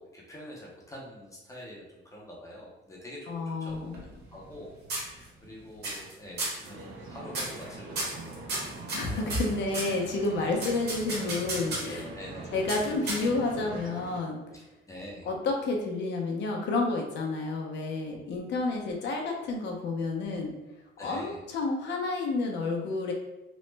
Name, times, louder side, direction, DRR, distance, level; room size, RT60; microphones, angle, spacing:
voice 1, 0.0-8.4 9.0-9.3 11.2-11.4 11.9-12.5 14.5-14.6 14.9-15.3 21.0-21.4, equal, 15° left, -4 dB, 0.5 m, -46 dB
voice 2, 3.3-4.0 8.9-12.1 12.5-14.4 15.2-20.5 21.0-23.1, left 3 dB, 60° left, 0 dB, 0.6 m, -30 dB
sound 1, 3.7-4.6 4.9-5.5 5.8-6.1 6.4-6.7 7.3-7.6 8.0-10.0 10.6-12.0 12.7-13.5, right 2 dB, 55° right, 1.0 m, -34 dB
sound 2, 6.6-14.2, right 2 dB, 85° right, 0.8 m, -43 dB
3.0 x 2.0 x 3.2 m, 0.98 s
cardioid pair, 180°, 20 cm